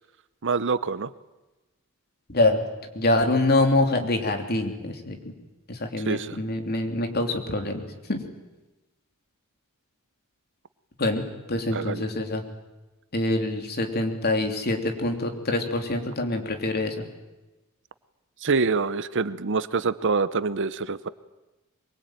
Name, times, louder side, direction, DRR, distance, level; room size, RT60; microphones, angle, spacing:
voice 1, 0.4-1.1 6.1-6.4 11.7-12.0 18.4-21.1, right 4 dB, 55° right, 15 dB, 0.8 m, -25 dB
voice 2, 2.3-2.6 2.9-5.2 5.7-7.8 8.1-8.2 11.0-11.2 11.5-12.4 13.1-17.1, left 2 dB, 45° left, 5 dB, 3.2 m, -25 dB
23.5 x 23.0 x 9.2 m, 1.1 s
head